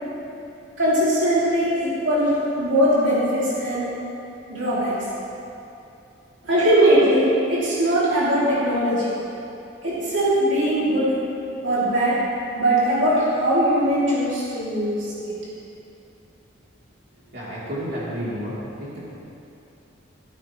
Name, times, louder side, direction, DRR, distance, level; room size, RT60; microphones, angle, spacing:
voice 1, 0.8-3.8 4.5-4.9 6.4-9.1 9.8-11.2 11.6-12.2 12.5-15.4, right 1 dB, 70° right, -9 dB, 2.9 m, -20 dB
voice 2, 17.3-18.5, equal, 55° right, -9 dB, 3.2 m, -30 dB
14.0 x 13.5 x 3.2 m, 2.8 s
head